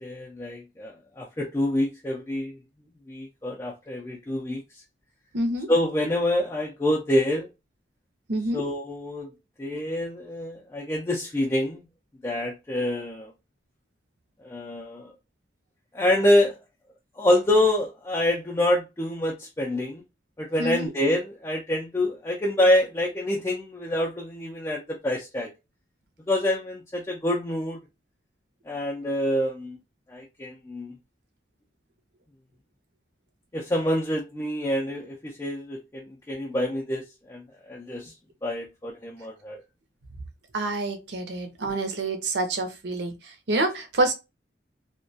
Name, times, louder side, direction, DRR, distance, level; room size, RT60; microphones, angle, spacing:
voice 1, 0.0-2.6 3.1-4.6 5.7-7.5 8.5-9.3 9.6-11.8 12.2-13.3 14.4-15.1 15.9-16.5 17.2-20.0 20.4-25.5 26.3-27.8 28.7-29.8 30.1-31.0 33.5-38.1 38.4-39.6, left 1 dB, 15° left, 0.4 m, -26 dB
voice 2, 5.3-5.7 8.3-8.6 20.6-20.9 40.5-44.1, right 2 dB, 65° right, 0.6 m, -27 dB
2.3 x 2.2 x 2.6 m
head